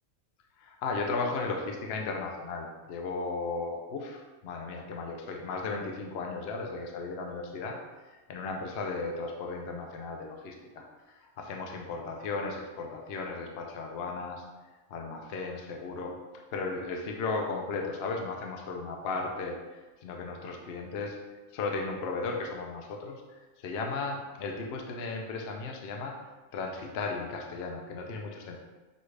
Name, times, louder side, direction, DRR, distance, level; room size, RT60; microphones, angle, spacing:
voice 1, 0.6-7.8 8.3-14.4 14.9-16.2 16.5-19.6 20.0-21.2 21.5-23.2 23.6-26.2 26.5-28.6, left 3 dB, 60° left, 1 dB, 0.7 m, -35 dB
6.3 x 2.4 x 3.2 m, 1.2 s
omnidirectional pair, 1.4 m